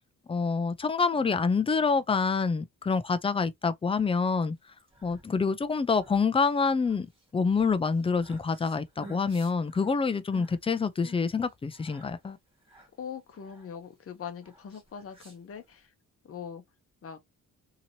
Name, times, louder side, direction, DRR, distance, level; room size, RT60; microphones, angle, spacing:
voice 1, 0.3-4.6 5.0-7.1 7.3-12.4, left 4 dB, 15° left, 0.3 m, -27 dB
sound 1, 4.7-15.9, equal, 15° right, 1.5 m, -54 dB
voice 2, 13.0-15.9 16.2-16.6 17.0-17.2, left 7 dB, 40° left, 0.7 m, -41 dB
2.8 x 2.8 x 2.7 m
cardioid pair, 115°, 35 cm